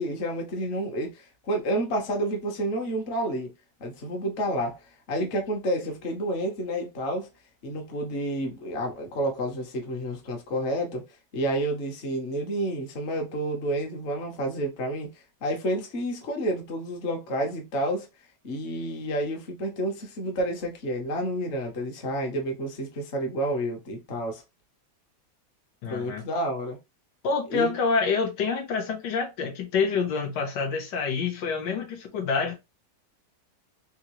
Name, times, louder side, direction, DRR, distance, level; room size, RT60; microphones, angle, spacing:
voice 1, 0.0-3.5 3.8-7.3 7.6-11.0 11.3-18.1 18.4-24.4 25.9-26.8 27.5-27.7, right 1 dB, 45° left, 1.0 m, -30 dB
voice 2, 25.8-26.2 27.2-32.6, left 5 dB, 75° left, 1.4 m, -27 dB
3.7 x 2.6 x 2.9 m
omnidirectional pair, 1.9 m